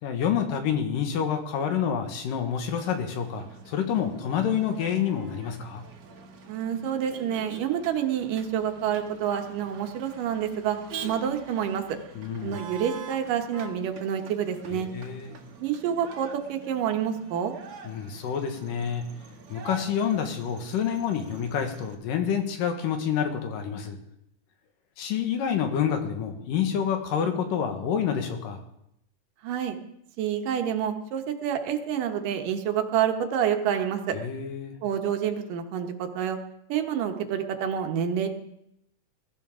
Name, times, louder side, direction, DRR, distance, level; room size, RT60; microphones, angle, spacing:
voice 1, 0.0-5.8 12.2-12.6 14.7-15.4 17.8-19.0 19.5-24.0 25.0-28.6 34.1-34.8, left 8 dB, 85° left, 5 dB, 3.1 m, -28 dB
Motor vehicle (road), 2.7-21.9, right 4 dB, 55° right, 1.9 m, -46 dB
voice 2, 6.5-10.8 11.0-11.8 12.4-14.9 15.6-17.5 29.4-29.8 30.2-34.2 34.8-36.4 36.7-38.3, right 9 dB, 80° right, 5 dB, 2.7 m, -28 dB
21.5 x 12.5 x 3.7 m, 0.78 s
omnidirectional pair, 3.8 m